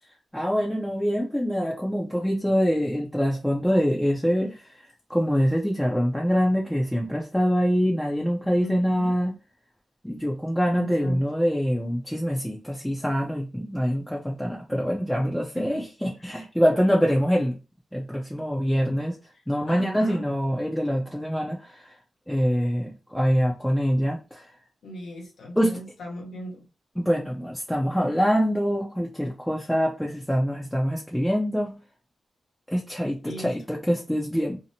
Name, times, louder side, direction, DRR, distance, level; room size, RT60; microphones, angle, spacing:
voice 1, 0.3-4.5 5.1-9.3 10.0-17.6 17.9-19.2 19.5-21.9 22.3-24.5 25.6-25.8 27.0-31.8 32.7-34.6, equal, 5° left, -2 dB, 0.5 m, -24 dB
voice 2, 8.6-9.1 10.7-11.2 15.5-15.8 19.7-20.2 24.8-26.6 33.2-33.5, equal, 75° left, 0 dB, 1.1 m, -38 dB
2.7 x 2.1 x 2.7 m, 0.31 s
wide cardioid pair, 120°, 0 cm